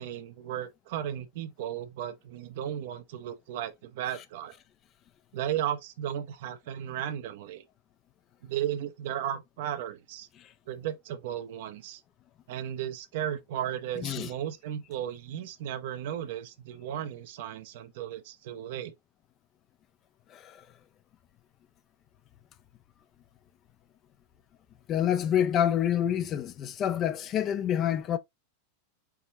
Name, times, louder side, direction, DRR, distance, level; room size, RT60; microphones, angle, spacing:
voice 1, 0.0-4.6 5.3-7.6 8.4-10.3 10.7-12.0 12.5-18.9, right 10 dB, 50° right, 0.7 m, -35 dB
voice 2, 20.3-20.7 24.9-28.2, left 10 dB, 30° left, 0.5 m, -27 dB
4.8 x 3.0 x 2.7 m
figure-of-eight pair, 90°, 0 cm